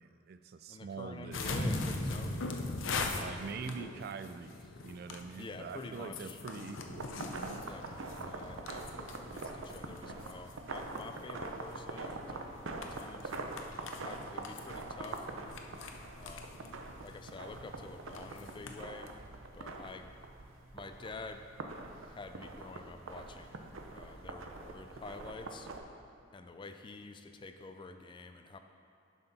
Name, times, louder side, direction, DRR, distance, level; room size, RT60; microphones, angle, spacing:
voice 1, 0.0-1.5 3.1-7.6, right 5 dB, 50° right, 11 dB, 0.3 m, -44 dB
voice 2, 0.7-2.8 5.4-6.4 7.7-13.3 13.8-15.2 16.2-16.7 17.0-19.1 19.5-20.1 20.7-21.4 22.0-23.6 23.9-25.7 26.3-28.6, left 3 dB, 25° left, 7 dB, 0.3 m, -48 dB
sound 1, 1.3-18.8, left 4 dB, 75° left, 0.6 m, -44 dB
sound 2, 1.5-4.3 4.6-4.7, left 1 dB, 55° left, 1.1 m, -37 dB
sound 3, 7.0-25.8, right 3 dB, 80° right, 0.7 m, -44 dB
10.5 x 5.7 x 4.1 m, 2.6 s
head